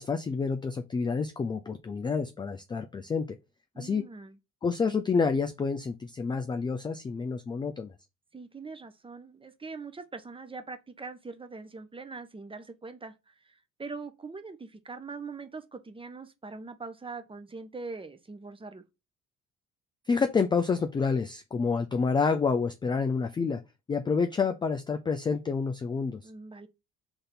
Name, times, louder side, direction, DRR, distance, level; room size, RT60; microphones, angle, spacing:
voice 1, 0.0-3.4 3.8-4.1 4.6-7.9 20.1-23.6 23.9-26.3, left 5 dB, 10° left, 0.4 m, -28 dB
voice 2, 3.7-4.4 8.3-18.8 26.2-26.7, right 4 dB, 15° right, 0.7 m, -42 dB
3.9 x 3.4 x 4.0 m
figure-of-eight pair, 45°, 39 cm